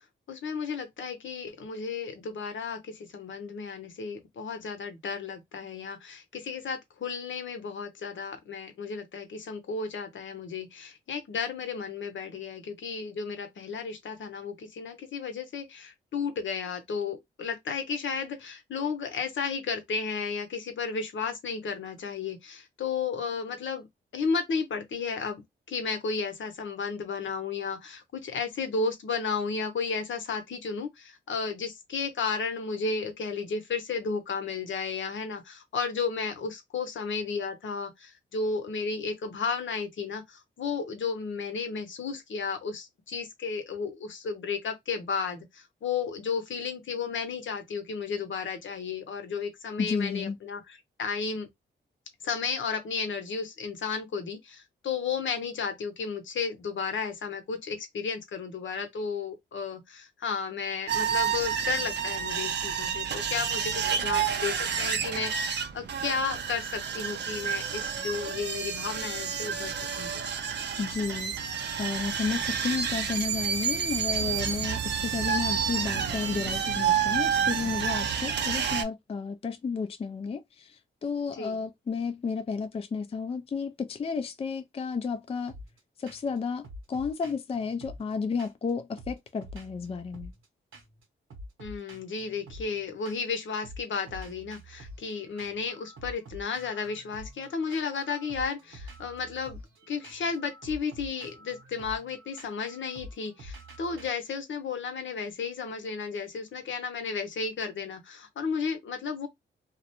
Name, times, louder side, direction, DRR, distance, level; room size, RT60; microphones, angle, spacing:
voice 1, 0.3-23.9 24.1-25.4 25.7-51.5 52.2-70.2 81.4-81.6 91.6-99.6 99.9-109.3, left 5 dB, 65° left, 0.8 m, -33 dB
voice 2, 49.8-50.4 70.8-71.3 71.8-85.6 86.0-90.3, left 5 dB, 30° left, 0.4 m, -32 dB
sound 1, 60.9-78.8, right 7 dB, 55° right, 0.5 m, -29 dB
sound 2, 85.5-85.8 86.1-86.4 86.6-88.7 89.0-90.5 90.7-91.0 91.3-93.4 93.6-104.1, equal, 75° right, 0.9 m, -47 dB
2.3 x 2.0 x 2.9 m
cardioid pair, 55°, 21 cm